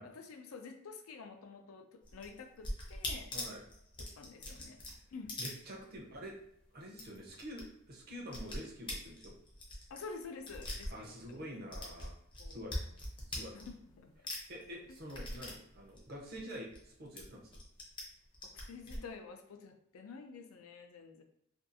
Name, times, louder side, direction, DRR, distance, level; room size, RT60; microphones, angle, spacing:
voice 1, 0.0-3.3 4.0-4.8 5.1-5.3 9.9-11.5 12.4-12.9 13.5-14.1 14.9-15.0 18.7-21.2, left 4 dB, 75° left, 5 dB, 0.4 m, -49 dB
sound 1, 2.0-6.2 6.5-6.6 6.9-7.6 7.9-11.4 11.7-14.0 14.3-16.8 17.2-18.0 18.3-19.0, left 1 dB, 25° left, 0.6 m, -42 dB
voice 2, 3.3-3.6 5.4-6.4 6.7-9.3 10.9-12.1 12.5-12.7 13.3-13.5 14.5-17.5, equal, 45° right, -1 dB, 0.6 m, -47 dB
2.6 x 2.3 x 2.5 m, 0.74 s
head